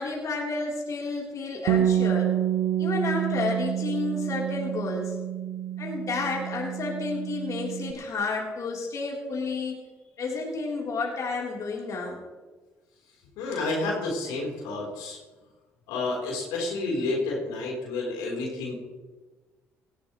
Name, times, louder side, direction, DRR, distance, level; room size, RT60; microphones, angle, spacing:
voice 1, 0.0-2.3 2.8-5.1 5.8-9.8 10.2-12.2, left 3 dB, 50° left, -3 dB, 3.8 m, -31 dB
Bass guitar, 1.7-7.9, right 10 dB, 80° right, 0.8 m, -28 dB
voice 2, 13.4-15.2 15.9-18.8, left 2 dB, 80° left, -3 dB, 4.0 m, -30 dB
18.0 x 13.5 x 3.2 m, 1.3 s
hypercardioid pair, 55°, 7 cm